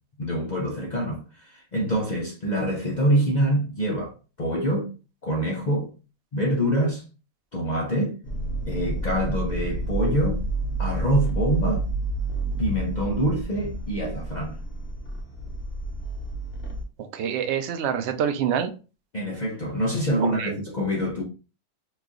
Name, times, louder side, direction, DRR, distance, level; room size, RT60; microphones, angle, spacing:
voice 1, 0.2-4.1 4.4-4.9 5.2-5.9 6.3-7.0 7.5-8.2 8.7-10.4 10.8-11.9 12.6-14.6 19.1-21.2, equal, 75° left, 0.4 m, -25 dB
sound 1, 8.2-16.8, right 2 dB, 45° left, 0.9 m, -29 dB
voice 2, 17.0-18.7 20.2-20.6, right 8 dB, 75° right, 0.6 m, -26 dB
2.9 x 2.4 x 3.6 m
omnidirectional pair, 1.6 m